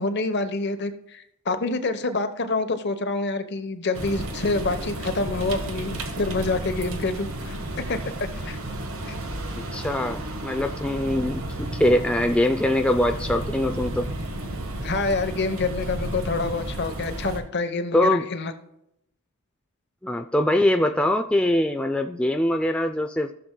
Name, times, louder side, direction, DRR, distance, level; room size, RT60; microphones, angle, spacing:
voice 1, 0.0-8.6 9.1-9.2 14.8-18.5, left 3 dB, 50° left, 9 dB, 0.9 m, -27 dB
sound 1, 3.9-17.4, right 1 dB, 65° right, 1.3 m, -32 dB
voice 2, 9.7-14.1 17.9-18.2 20.0-23.3, left 1 dB, 5° left, 5 dB, 0.3 m, -23 dB
15.0 x 6.9 x 2.2 m, 0.79 s
head